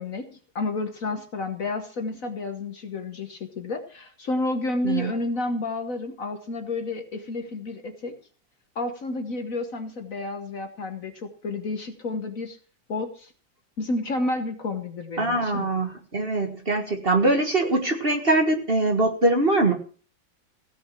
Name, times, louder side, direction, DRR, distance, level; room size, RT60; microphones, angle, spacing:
voice 1, 0.0-8.2 8.7-12.6 12.9-13.3 13.8-15.7, left 2 dB, 50° left, 7 dB, 1.4 m, -30 dB
voice 2, 15.2-19.7, right 2 dB, 30° right, 4 dB, 1.6 m, -22 dB
16.5 x 6.1 x 7.4 m, 0.41 s
omnidirectional pair, 2.1 m